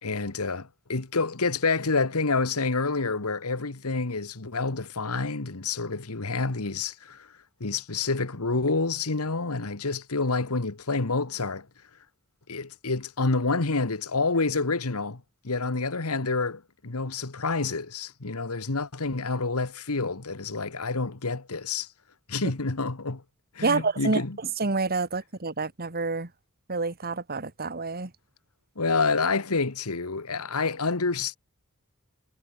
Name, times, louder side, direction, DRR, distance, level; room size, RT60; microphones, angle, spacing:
voice 1, 0.0-7.3 7.6-11.7 12.5-21.9 22.3-23.2 23.5-24.4 28.8-31.4, left 3 dB, 85° left, 1.6 m, -28 dB
voice 2, 23.6-24.2 24.6-26.3 26.7-28.1, right 3 dB, 45° right, 2.1 m, -28 dB
head